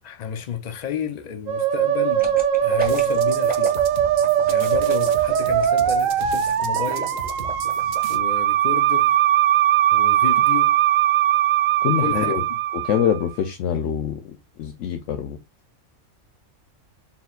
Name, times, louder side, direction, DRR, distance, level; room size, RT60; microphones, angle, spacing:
voice 1, 0.0-3.8 4.5-7.1 8.1-9.2 9.9-10.8 12.0-12.3, left 8 dB, 55° left, 0.4 m, -31 dB
Musical instrument, 1.5-13.2, right 11 dB, 80° right, 1.0 m, -20 dB
sound 1, 2.2-8.0 8.4-8.5, right 1 dB, 5° right, 1.0 m, -34 dB
sound 2, 2.8-8.2, right 5 dB, 55° right, 0.5 m, -38 dB
voice 2, 11.8-12.4 12.7-15.4, left 9 dB, 70° left, 0.9 m, -25 dB
4.2 x 3.8 x 2.3 m
omnidirectional pair, 1.4 m